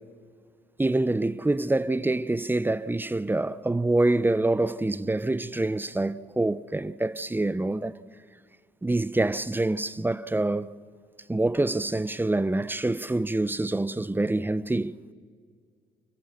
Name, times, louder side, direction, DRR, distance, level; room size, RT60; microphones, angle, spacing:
voice 1, 0.8-7.9 8.8-10.7 11.3-14.9, right 2 dB, 10° right, 0.6 m, -26 dB
28.5 x 14.5 x 6.5 m
cardioid pair, 90°, 20 cm